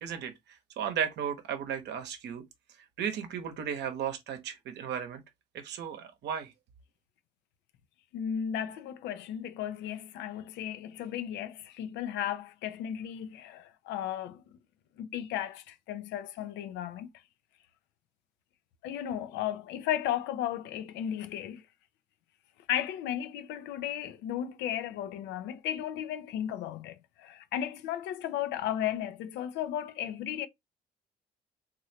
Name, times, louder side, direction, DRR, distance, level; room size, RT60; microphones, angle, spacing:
voice 1, 0.0-2.4 3.0-5.2 5.5-6.5, right 8 dB, 70° right, 0.8 m, -35 dB
voice 2, 8.1-14.4 15.0-17.1 18.8-21.6 22.7-30.5, left 10 dB, 70° left, 0.4 m, -35 dB
3.1 x 2.6 x 2.7 m
hypercardioid pair, 55°, 19 cm